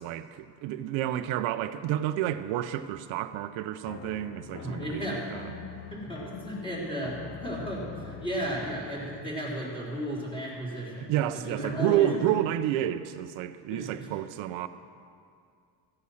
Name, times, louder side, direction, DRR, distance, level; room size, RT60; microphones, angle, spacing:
voice 1, 0.0-5.4 11.0-14.7, right 12 dB, 80° right, 10 dB, 0.6 m, -30 dB
sound 1, 3.9-9.4, left 9 dB, 35° left, 0.4 m, -44 dB
voice 2, 4.6-5.6 5.9-12.1 13.7-14.1, right 1 dB, 10° left, -6 dB, 3.8 m, -34 dB
15.0 x 8.3 x 6.4 m, 2.3 s
cardioid pair, 135°, 46 cm